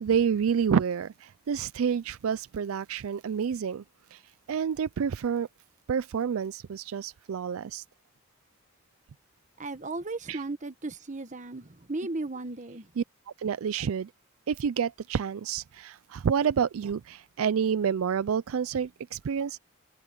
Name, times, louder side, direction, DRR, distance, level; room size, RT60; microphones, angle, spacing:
voice 1, 0.0-3.8 4.1-4.2 4.5-5.5 5.9-7.8 10.3-10.4 13.0-13.1 13.4-14.1 14.5-19.6, right 7 dB, 70° right, 0.4 m, -28 dB
voice 2, 9.6-12.9, right 2 dB, 35° right, 1.2 m, -36 dB
head